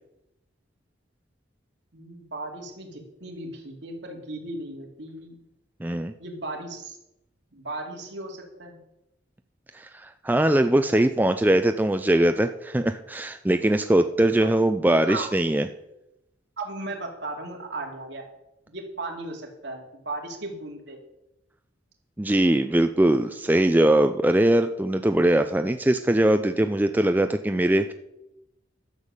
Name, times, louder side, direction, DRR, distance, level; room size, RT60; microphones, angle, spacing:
voice 1, 1.9-5.4 6.2-7.0 7.5-8.8 14.4-14.5 14.8-15.3 16.6-18.2 18.7-21.0, right 2 dB, 65° right, 1 dB, 2.6 m, -36 dB
voice 2, 5.8-6.1 9.7-15.7 22.2-27.9, right 1 dB, 10° right, 8 dB, 0.4 m, -21 dB
12.0 x 7.3 x 6.5 m, 0.88 s
head